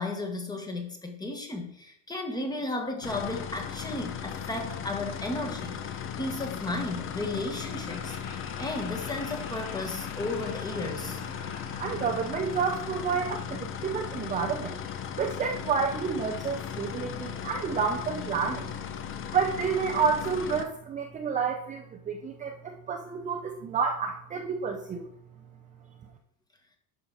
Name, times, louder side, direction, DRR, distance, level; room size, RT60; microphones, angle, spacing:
voice 1, 0.0-11.2, left 2 dB, 10° left, 3 dB, 1.4 m, -34 dB
sound 1, 3.0-20.6, left 8 dB, 35° left, 0.8 m, -37 dB
Laughter, 7.6-14.5, left 4 dB, 75° left, 2.6 m, -47 dB
voice 2, 11.8-14.8 15.2-18.7 19.3-25.1, right 6 dB, 20° right, 2 dB, 0.6 m, -29 dB
11.0 x 5.8 x 4.9 m, 0.73 s
cardioid pair, 160°, 38 cm